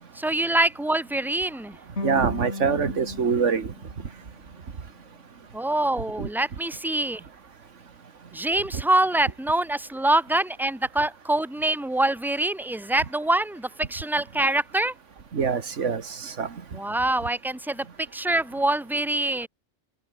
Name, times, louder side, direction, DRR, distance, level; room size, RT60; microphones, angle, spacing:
voice 1, 0.2-1.8 5.5-7.2 8.3-14.9 16.7-17.9 18.1-19.5, right 1 dB, ahead, 1.8 m, -25 dB
sound 1, 2.0-5.1, left 2 dB, 65° left, 3.9 m, -37 dB
voice 2, 2.0-3.7 6.2-6.3 8.7-8.8 15.3-16.5, right 6 dB, 85° right, 1.9 m, -25 dB
open air
omnidirectional pair, 1.2 m